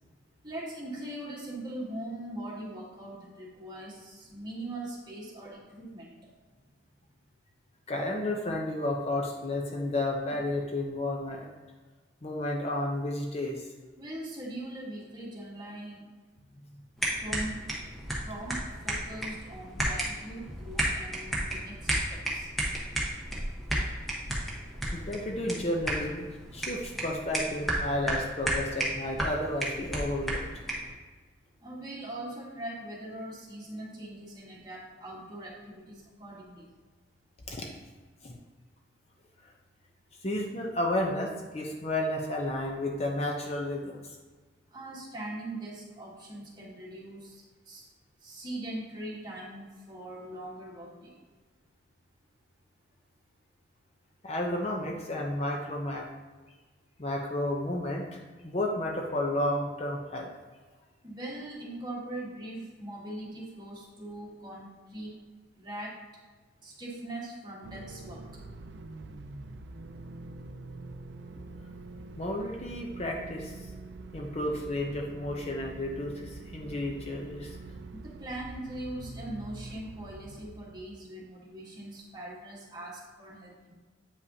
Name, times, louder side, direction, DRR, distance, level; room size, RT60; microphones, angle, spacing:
voice 1, 0.4-6.1 14.0-16.1 17.2-17.6 18.2-22.5 31.6-36.7 44.7-47.9 48.2-51.2 61.0-65.2 65.6-66.0 66.6-68.2 77.9-83.7, right 1 dB, 25° right, -4 dB, 1.4 m, -41 dB
voice 2, 7.9-11.5 12.2-13.7 24.9-26.3 26.5-30.4 37.5-37.6 38.2-38.3 40.2-44.0 54.2-56.1 57.0-60.3 72.2-73.5 74.1-77.6, left 1 dB, 35° left, 0 dB, 0.6 m, -32 dB
sound 1, 17.0-30.9, right 1 dB, ahead, 1.1 m, -33 dB
sound 2, 67.6-81.1, right 2 dB, 70° right, 0.4 m, -45 dB
8.2 x 5.3 x 2.8 m, 1.4 s
head